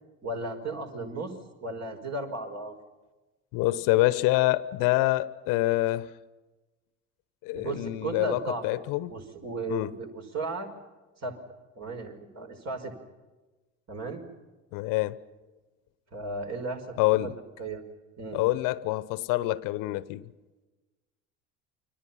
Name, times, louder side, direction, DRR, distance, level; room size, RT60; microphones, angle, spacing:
voice 1, 0.2-1.3 1.6-2.7 7.5-8.6 9.1-10.7 11.2-11.4 11.8-12.9 13.9-14.2 16.1-17.0 17.2-17.3 17.6-17.8 18.2-18.4, right 2 dB, 45° right, 5.6 m, -35 dB
voice 2, 3.5-6.1 7.4-9.1 9.7-9.9 14.7-15.2 17.0-17.4 18.3-20.3, left 18 dB, 60° left, 1.1 m, -26 dB
29.5 x 24.5 x 5.9 m
figure-of-eight pair, 60°, 37 cm